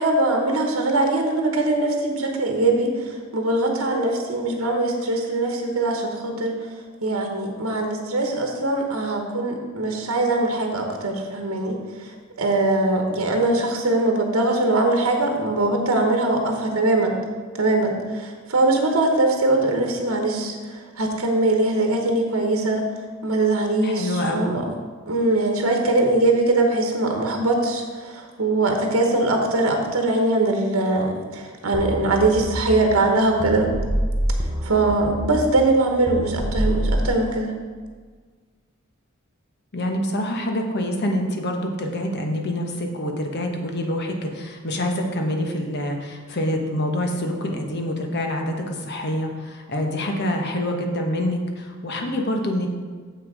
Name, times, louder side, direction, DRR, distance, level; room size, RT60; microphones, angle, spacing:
voice 1, 0.0-6.5 7.0-12.1 12.4-17.2 17.6-22.8 23.2-24.6 25.1-33.7 34.6-37.5, right 2 dB, 80° right, 3 dB, 1.1 m, -22 dB
voice 2, 23.8-24.5 39.7-52.7, left 1 dB, 50° left, 3 dB, 1.1 m, -26 dB
sound 1, 31.7-37.1, right 1 dB, 25° right, 0.7 m, -27 dB
7.2 x 6.2 x 4.9 m, 1.5 s
head